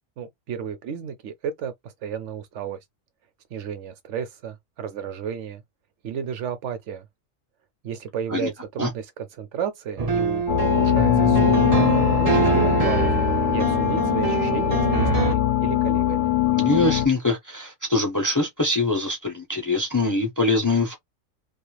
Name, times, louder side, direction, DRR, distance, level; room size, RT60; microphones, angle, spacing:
voice 1, 0.2-2.8 3.5-5.6 6.0-7.1 7.8-11.6 12.2-16.3, right 7 dB, 70° right, 0.9 m, -32 dB
sound 1, 10.0-15.3, right 5 dB, 40° right, 0.6 m, -24 dB
sound 2, 10.5-17.1, left 12 dB, 70° left, 0.9 m, -21 dB
voice 2, 16.5-21.0, left 2 dB, 20° left, 0.5 m, -23 dB
3.1 x 2.4 x 2.2 m
omnidirectional pair, 1.4 m